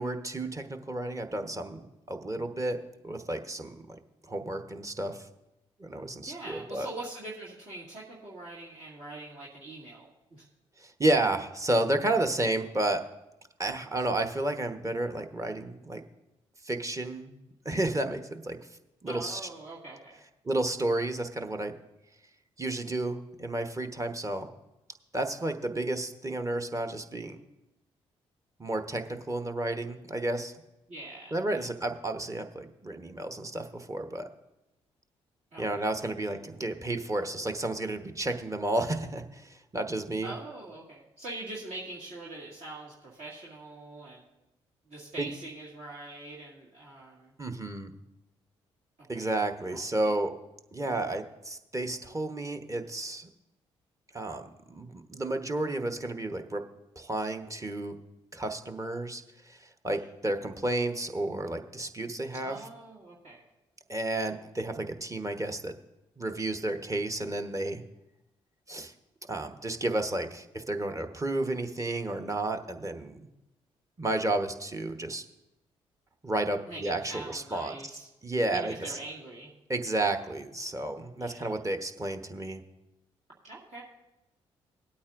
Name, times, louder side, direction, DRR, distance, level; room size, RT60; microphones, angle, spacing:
voice 1, 0.0-2.8 3.0-4.0 4.3-5.3 5.8-6.9 10.8-13.0 13.6-16.0 16.6-17.3 17.6-18.6 19.0-19.4 20.4-21.7 22.6-24.5 25.1-27.4 28.6-30.5 31.3-34.3 35.6-40.3 45.2-45.3 47.4-47.9 49.1-50.3 50.7-53.3 54.1-54.4 54.7-56.6 57.0-58.0 58.3-62.6 63.9-65.7 66.2-67.8 68.7-68.9 69.3-73.3 74.0-75.2 76.2-77.7 78.2-79.0 79.7-82.6, right 2 dB, 25° right, 7 dB, 1.1 m, -31 dB
voice 2, 6.2-10.5 19.1-20.2 30.9-31.7 35.5-36.3 40.2-44.2 44.9-47.3 49.0-49.3 49.7-50.2 50.8-51.1 59.9-60.0 62.3-63.4 76.7-78.1 78.5-79.5 81.2-81.5 83.4-83.8, right 2 dB, 55° right, -7 dB, 2.1 m, -43 dB
19.0 x 8.6 x 2.6 m, 0.93 s
hypercardioid pair, 45°, 13 cm